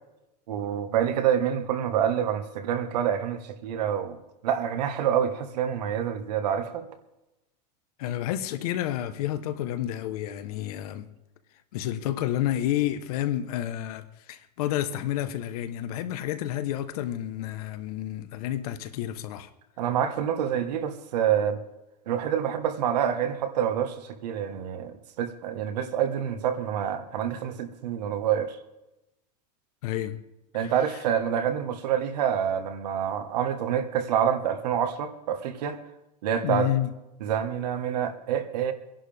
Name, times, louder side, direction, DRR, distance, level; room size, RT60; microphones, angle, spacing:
voice 1, 0.5-4.2 4.4-6.9 19.8-21.6 22.1-28.6 30.5-35.8 36.2-36.7 37.2-38.7, right 9 dB, 80° right, 1.5 m, -27 dB
voice 2, 8.0-11.1 11.7-19.5 29.8-30.2 30.6-30.7 36.4-36.9, left 12 dB, 65° left, 1.2 m, -30 dB
24.5 x 11.0 x 3.5 m
supercardioid pair, 165°, 21 cm